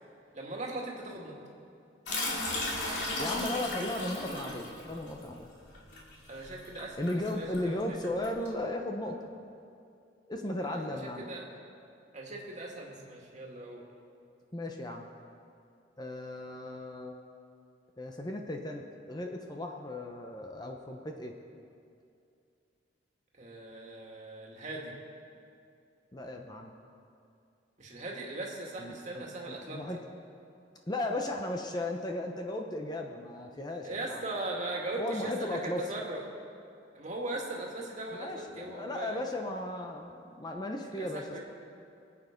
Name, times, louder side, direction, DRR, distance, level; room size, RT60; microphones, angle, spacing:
voice 1, 0.3-1.4 6.3-7.0 7.3-8.0 10.6-11.4 12.1-13.8 23.4-24.9 27.8-29.8 33.8-36.2 36.9-39.2 40.9-41.4, right 2 dB, 40° right, -1 dB, 2.2 m, -39 dB
sound 1, 2.1-8.5, left 2 dB, 60° left, 2.8 m, -36 dB
voice 2, 3.2-5.5 7.0-9.2 10.3-11.2 14.5-15.1 16.0-17.2 18.0-21.3 26.1-26.7 28.8-30.0 30.9-34.2 35.0-35.8 38.1-41.2, left 1 dB, 20° left, 2 dB, 0.8 m, -36 dB
25.5 x 8.5 x 5.2 m, 2.5 s
head